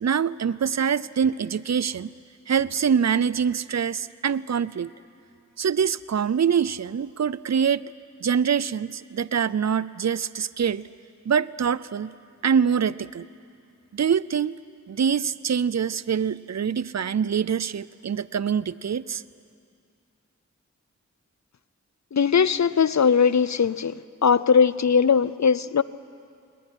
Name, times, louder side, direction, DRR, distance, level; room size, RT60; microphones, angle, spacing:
voice 1, 0.0-2.1 2.5-4.9 5.6-7.8 8.2-10.8 11.3-12.1 12.4-13.3 13.9-14.6 14.9-19.2, right 7 dB, 60° right, 19 dB, 0.5 m, -24 dB
voice 2, 22.1-23.9 24.2-25.8, left 6 dB, 65° left, 17 dB, 0.6 m, -19 dB
20.5 x 19.5 x 10.0 m, 2.4 s
wide cardioid pair, 45°, 30 cm